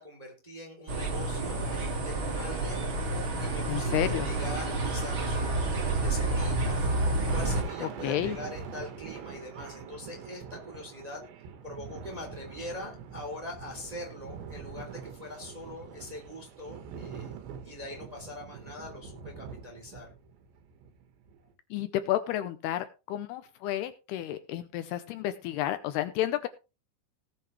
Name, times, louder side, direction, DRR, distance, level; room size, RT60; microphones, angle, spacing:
voice 1, 0.0-3.1 3.4-17.4 17.6-20.1, left 2 dB, 10° right, 2.2 m, -43 dB
sound 1, 0.9-7.6, right 2 dB, 35° right, 2.2 m, -29 dB
voice 2, 3.7-4.3 7.8-8.4 21.7-26.5, left 13 dB, 80° left, 2.6 m, -31 dB
Thunder, 7.2-21.5, right 7 dB, 85° right, 3.7 m, -44 dB
18.5 x 7.9 x 3.1 m
omnidirectional pair, 5.0 m